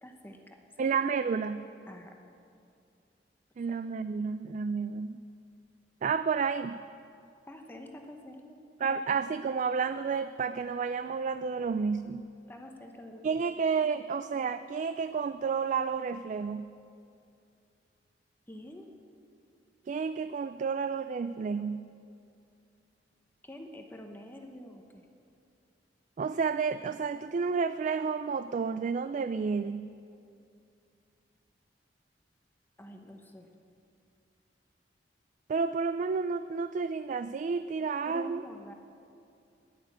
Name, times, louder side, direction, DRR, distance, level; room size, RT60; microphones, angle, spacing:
voice 1, 0.0-1.0 1.9-2.2 3.7-3.8 7.5-9.0 12.5-13.4 18.5-18.9 23.4-25.1 32.8-33.5 38.1-38.7, left 1 dB, 10° left, 3 dB, 0.9 m, -47 dB
voice 2, 0.8-1.7 3.6-5.2 6.0-6.8 8.8-12.3 13.2-16.7 19.9-21.9 26.2-29.9 35.5-38.4, right 5 dB, 45° right, 12 dB, 0.3 m, -31 dB
11.0 x 11.0 x 8.5 m, 2.5 s
head